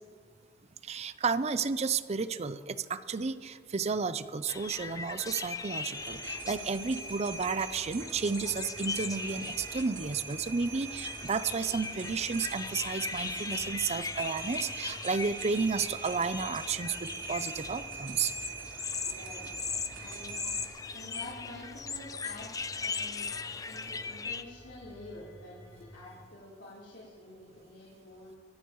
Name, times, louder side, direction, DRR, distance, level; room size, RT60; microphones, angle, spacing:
voice 1, 0.8-18.3, right 5 dB, 35° right, 13 dB, 0.5 m, -32 dB
sound 1, 4.5-24.4, left 5 dB, 20° left, 0.5 m, -39 dB
sound 2, 5.9-20.7, right 5 dB, 70° right, 3.5 m, -43 dB
sound 3, 7.5-26.2, equal, 45° left, 4.7 m, -54 dB
voice 2, 19.0-19.5 20.0-20.4 20.8-23.3 23.7-28.3, left 1 dB, 75° left, -8 dB, 3.7 m, -48 dB
24.0 x 12.5 x 3.1 m, 2.1 s
head